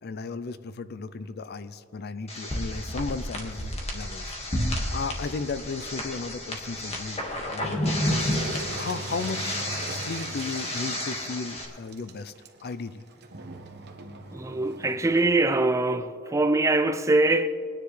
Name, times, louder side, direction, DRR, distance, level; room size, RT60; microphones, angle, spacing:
voice 1, 0.0-7.2 7.5-8.0 8.7-9.6 9.9-12.3 12.6-13.0, left 4 dB, 50° left, 0.4 m, -35 dB
sound 1, 2.3-11.6, left 1 dB, 30° left, 1.7 m, -31 dB
Engine, 8.0-15.4, right 3 dB, 55° right, 1.0 m, -40 dB
voice 2, 14.3-17.5, right 2 dB, 15° right, 0.4 m, -23 dB
22.0 x 9.9 x 3.2 m
head